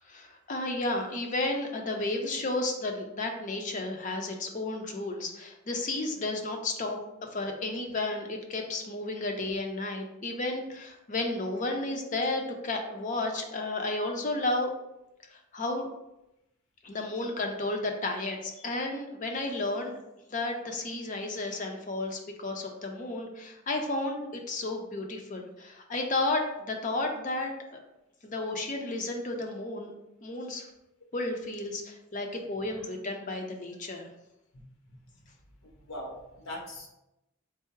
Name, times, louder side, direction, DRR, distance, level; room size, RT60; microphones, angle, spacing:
voice 1, 0.1-7.0 7.3-14.7 15.3-15.9 16.8-20.0 20.3-27.8 28.2-29.9 30.2-30.7 31.1-34.1, left 2 dB, 40° left, 3 dB, 0.6 m, -32 dB
voice 2, 35.6-36.9, left 1 dB, 85° left, -1 dB, 1.1 m, -41 dB
4.5 x 2.0 x 4.5 m, 0.89 s
head